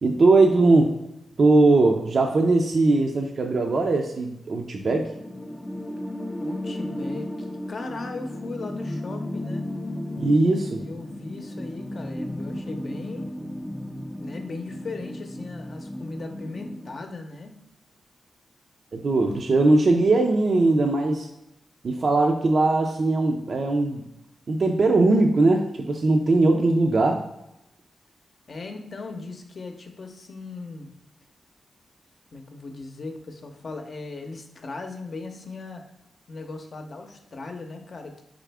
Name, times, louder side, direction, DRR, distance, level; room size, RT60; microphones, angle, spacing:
voice 1, 0.0-0.9 1.4-5.1 10.2-10.8 18.9-21.3 21.8-24.0 24.5-27.2, right 2 dB, 55° right, 2 dB, 0.4 m, -20 dB
sound 1, 4.9-16.9, left 1 dB, 10° left, 0.4 m, -34 dB
voice 2, 6.4-9.7 10.8-13.3 14.2-17.5 28.5-30.9 32.3-35.8 36.3-38.2, left 3 dB, 55° left, 5 dB, 0.7 m, -38 dB
4.0 x 3.6 x 3.4 m, 0.87 s
cardioid pair, 75°, 0 cm